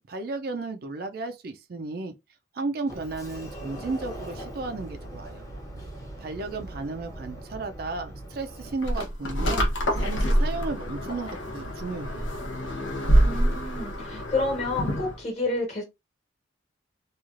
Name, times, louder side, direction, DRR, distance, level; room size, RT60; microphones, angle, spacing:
voice 1, 0.0-2.1 2.5-5.4 6.2-9.7 10.0-12.3, right 3 dB, 50° right, 0.4 m, -34 dB
Sliding door, 2.9-8.8, right 1 dB, 20° left, 0.7 m, -40 dB
sound 1, 8.8-15.2, equal, 80° left, 0.7 m, -26 dB
voice 2, 13.2-15.8, left 2 dB, 35° left, 1.2 m, -29 dB
3.0 x 2.3 x 2.4 m
head